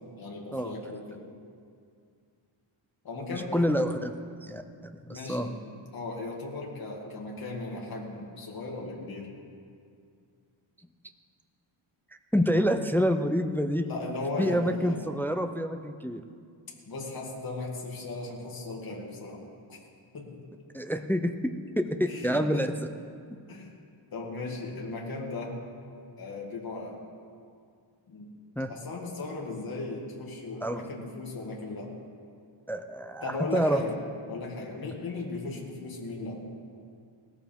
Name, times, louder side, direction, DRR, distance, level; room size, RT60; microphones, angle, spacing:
voice 1, 0.2-1.3 3.0-3.7 5.1-5.6 5.9-9.3 13.8-15.1 16.9-19.4 19.7-19.8 20.1-20.3 22.1-22.6 23.5-23.7 24.1-25.6 26.2-27.0 28.1-28.3 28.7-31.9 33.2-34.0 34.3-36.4, left 3 dB, 45° left, -2 dB, 2.5 m, -37 dB
voice 2, 3.3-4.1 4.4-4.6 5.1-5.5 12.3-13.9 14.4-16.2 20.7-22.9 28.6-28.7 30.6-30.8 32.7-33.8, equal, 5° left, 7 dB, 0.3 m, -27 dB
18.5 x 14.0 x 3.5 m, 2.3 s
wide cardioid pair, 165°, 49 cm